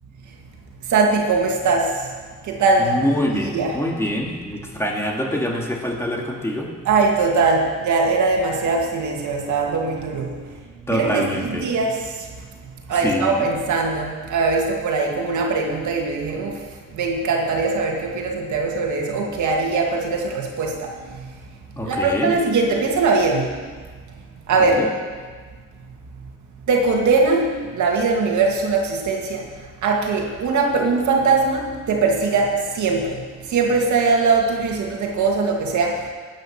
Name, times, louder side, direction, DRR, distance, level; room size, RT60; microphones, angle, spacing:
voice 1, 0.9-2.1 2.4-2.9 3.3-3.8 6.9-10.3 10.9-12.3 12.9-16.6 16.9-21.3 21.9-23.5 24.5-24.8 26.7-29.5 29.8-36.1, right 4 dB, 75° right, 1 dB, 2.2 m, -21 dB
voice 2, 2.8-6.7 10.9-11.6 13.0-13.5 21.8-22.3 24.6-24.9, equal, 10° left, -1 dB, 2.3 m, -25 dB
13.5 x 8.9 x 5.9 m, 1.5 s
cardioid pair, 90°, 30 cm